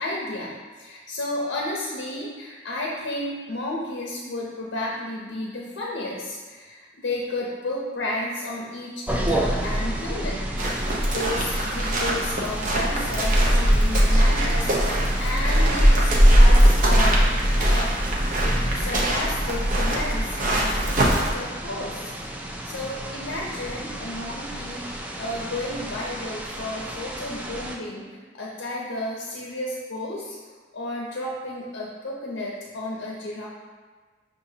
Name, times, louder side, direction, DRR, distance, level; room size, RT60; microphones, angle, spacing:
voice 1, 0.0-17.2 17.7-17.9 18.7-22.1 22.6-24.9 25.2-30.4 30.7-33.5, left 1 dB, 70° left, -3 dB, 0.6 m, -32 dB
sound 1, 9.1-27.8, right 1 dB, 10° right, 0.3 m, -32 dB
sound 2, 10.6-21.3, equal, 45° right, 0.6 m, -20 dB
6.4 x 2.5 x 2.7 m, 1.4 s
head